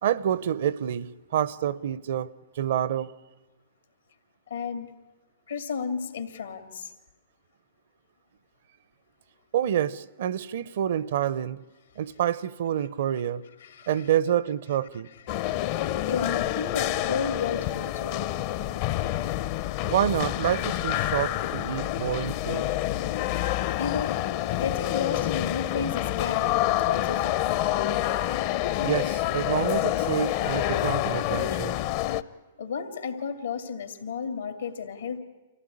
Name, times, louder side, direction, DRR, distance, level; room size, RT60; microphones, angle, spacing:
voice 1, 0.0-3.1 9.5-11.6 12.0-13.4 13.9-15.1 19.8-22.7 28.8-31.8, right 10 dB, 65° right, 0.7 m, -28 dB
voice 2, 4.5-4.9 5.5-6.9 13.6-13.9 15.3-18.3 23.4-23.5 23.8-24.2 24.6-27.6 32.6-35.2, left 6 dB, 85° left, 2.4 m, -33 dB
sound 1, 15.3-32.2, left 14 dB, 50° left, 0.7 m, -27 dB
25.5 x 15.5 x 9.9 m
hypercardioid pair, 125°, 0 cm